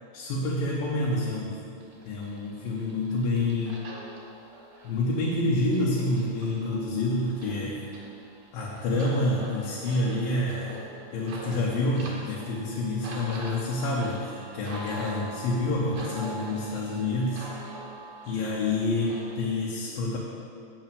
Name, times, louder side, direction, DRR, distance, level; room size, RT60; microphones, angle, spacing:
voice 1, 0.1-1.6 2.1-3.8 4.8-7.8 8.5-10.8 11.1-17.5 18.3-20.2, left 2 dB, 80° left, -4 dB, 2.7 m, -28 dB
sound 1, 1.8-19.4, right 2 dB, 60° right, 2.1 m, -44 dB
8.0 x 5.9 x 6.8 m, 2.3 s
omnidirectional pair, 4.1 m